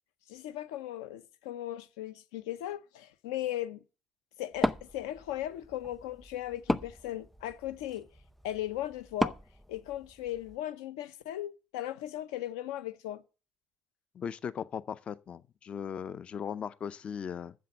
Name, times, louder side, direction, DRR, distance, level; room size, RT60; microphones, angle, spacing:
voice 1, 0.3-3.8 4.4-8.1 8.4-9.4 9.7-13.2, left 13 dB, 75° left, 0.8 m, -37 dB
Wood, 4.5-10.6, left 1 dB, 5° left, 0.7 m, -36 dB
voice 2, 14.1-17.5, left 7 dB, 45° left, 0.6 m, -38 dB
7.7 x 7.3 x 7.7 m
hypercardioid pair, 55°, 3 cm